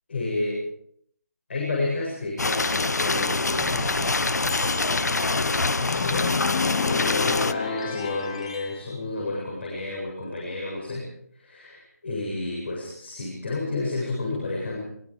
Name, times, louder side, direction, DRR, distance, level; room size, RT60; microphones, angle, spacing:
voice 1, 0.1-0.6 1.5-4.3 4.6-6.4 6.9-11.1 11.3-14.8, left 2 dB, 40° left, -1 dB, 7.9 m, -31 dB
sound 1, 2.4-7.5, left 3 dB, 80° left, 1.2 m, -25 dB
sound 2, 3.4-7.1, equal, 5° left, 1.8 m, -44 dB
sound 3, 5.8-8.8, left 5 dB, 20° left, 1.2 m, -29 dB
24.0 x 23.5 x 5.0 m, 0.67 s
figure-of-eight pair, 175°, 9 cm